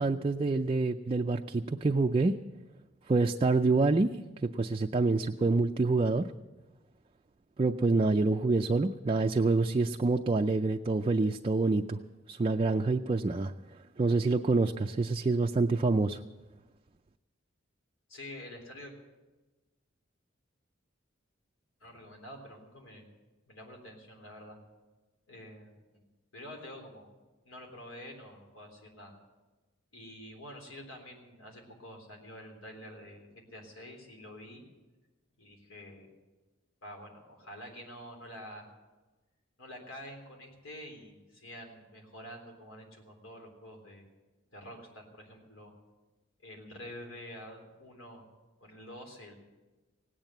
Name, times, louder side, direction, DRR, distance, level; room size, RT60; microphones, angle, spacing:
voice 1, 0.0-2.4 3.1-4.1 4.4-6.3 7.6-12.0 12.3-13.5 14.0-16.2, right 3 dB, 30° right, 4 dB, 0.4 m, -27 dB
voice 2, 18.1-18.9 21.8-23.1 23.5-24.6 25.3-26.0 26.3-27.1 27.4-29.1 29.9-34.6 35.4-36.1 36.8-38.7 39.6-44.0 44.5-45.7 46.4-48.2 48.6-49.4, left 1 dB, 85° left, 2 dB, 3.6 m, -48 dB
17.5 x 9.0 x 8.0 m, 1.2 s
head